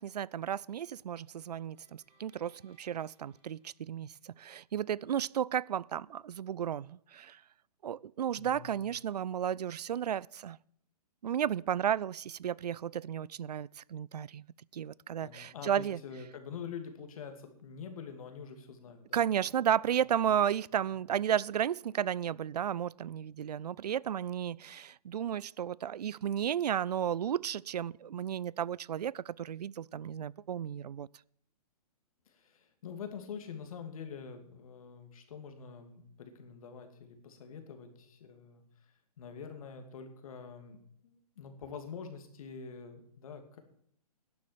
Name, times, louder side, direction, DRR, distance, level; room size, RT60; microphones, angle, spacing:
voice 1, 0.0-7.4 7.8-10.6 11.2-14.5 14.7-16.0 19.1-31.1, right 9 dB, 85° right, 0.4 m, -33 dB
sound 1, 1.4-4.7, right 3 dB, 25° right, 4.0 m, -72 dB
voice 2, 8.4-8.8 15.2-19.2 32.3-43.6, left 6 dB, 60° left, 2.6 m, -46 dB
11.5 x 7.6 x 7.4 m
hypercardioid pair, 140°, 20 cm